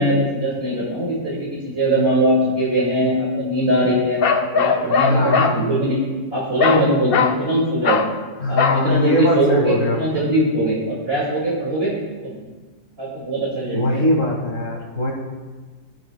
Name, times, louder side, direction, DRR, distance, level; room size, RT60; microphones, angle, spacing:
voice 1, 0.0-4.2 4.5-6.0 6.3-8.0 8.5-11.9 12.2-12.4 13.0-14.0, equal, 40° right, -7 dB, 2.4 m, -21 dB
Bark, 4.2-5.6 6.6-6.9 7.1-7.4 7.8-8.1 8.6-8.8, left 5 dB, 75° left, 0.5 m, -19 dB
voice 2, 5.0-5.6 8.4-10.2 13.7-15.1, left 1 dB, 55° left, 0 dB, 1.8 m, -21 dB
19.0 x 6.4 x 2.2 m, 1.3 s
omnidirectional pair, 1.7 m